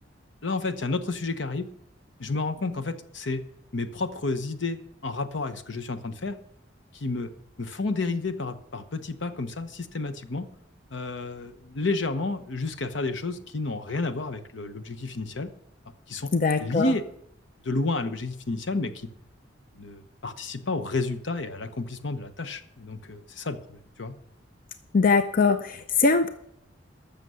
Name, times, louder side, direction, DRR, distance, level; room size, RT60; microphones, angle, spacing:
voice 1, 0.4-1.7 2.2-3.4 3.7-6.4 6.9-7.3 7.6-10.5 10.9-15.5 16.1-16.3 16.6-17.0 17.6-19.1 19.8-24.2, left 3 dB, 80° left, 10 dB, 1.0 m, -31 dB
voice 2, 16.3-16.9 24.9-26.3, left 4 dB, 50° left, 9 dB, 0.6 m, -22 dB
13.5 x 6.8 x 6.3 m, 0.75 s
head